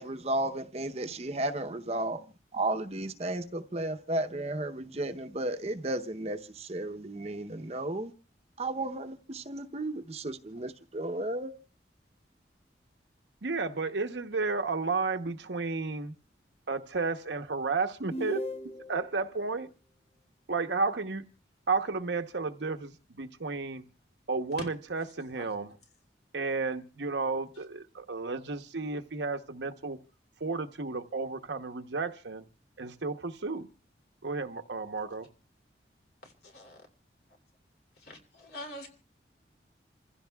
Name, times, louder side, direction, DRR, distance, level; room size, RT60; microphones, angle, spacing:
voice 1, 0.0-2.2 2.5-8.1 8.6-11.5, right 1 dB, 35° right, 0.8 m, -33 dB
voice 2, 13.4-16.1 16.7-18.4 18.9-19.7 20.5-21.2 21.7-23.8 24.3-25.8 26.3-30.0 30.4-32.4 32.8-33.7 34.2-35.3, right 4 dB, 85° right, 0.9 m, -32 dB
sound 1, 18.1-19.1, left 1 dB, 35° left, 0.7 m, -36 dB
voice 3, 36.2-36.8 38.0-38.9, left 1 dB, 60° left, 2.9 m, -44 dB
28.0 x 15.5 x 2.3 m
head